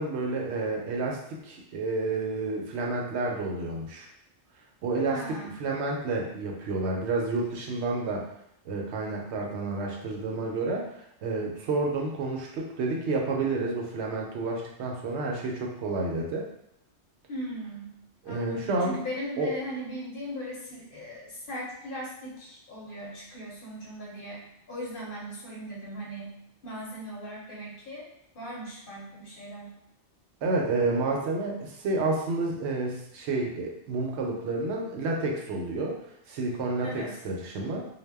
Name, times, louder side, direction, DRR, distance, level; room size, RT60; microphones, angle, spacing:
voice 1, 0.0-4.1 4.8-8.3 8.6-16.5 18.2-19.0 19.4-19.5 30.4-36.0 36.3-37.9, right 3 dB, 75° right, -1 dB, 0.8 m, -30 dB
voice 2, 5.0-5.6 17.3-17.9 18.2-26.4 26.6-28.1 28.3-29.7 36.8-37.2, equal, 55° left, -4 dB, 0.8 m, -38 dB
2.2 x 2.0 x 3.3 m, 0.77 s
omnidirectional pair, 1.2 m